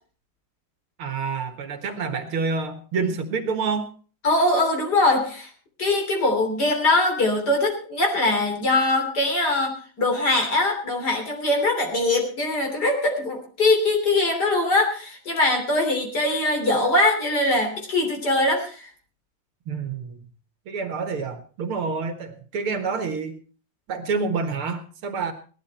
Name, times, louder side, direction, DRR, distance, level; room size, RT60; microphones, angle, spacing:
voice 1, 1.0-3.9 19.7-20.2 20.7-23.4 23.9-25.3, right 5 dB, 80° right, 8 dB, 2.4 m, -28 dB
voice 2, 4.2-5.5 5.8-18.9, left 2 dB, 50° left, 2 dB, 3.8 m, -22 dB
18.0 x 12.0 x 4.3 m, 0.39 s
omnidirectional pair, 2.3 m